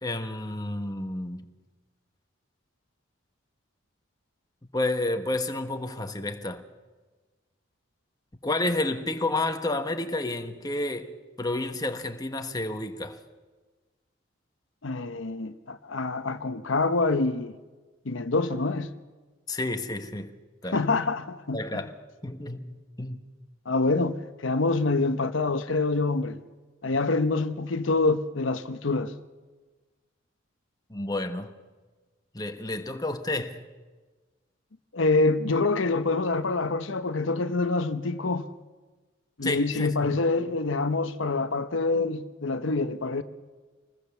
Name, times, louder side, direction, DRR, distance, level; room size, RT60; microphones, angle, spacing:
voice 1, 0.0-1.5 4.7-6.6 8.4-13.2 19.5-20.3 20.6-20.8 21.5-21.9 22.2-23.2 30.9-31.5 32.3-33.6 39.4-40.1, left 2 dB, 20° left, 1.3 m, -30 dB
voice 2, 14.8-17.6 18.0-18.9 20.7-21.8 23.7-26.4 26.8-29.1 34.9-38.5 39.4-43.2, left 3 dB, 75° left, 0.9 m, -26 dB
27.0 x 20.0 x 7.1 m
head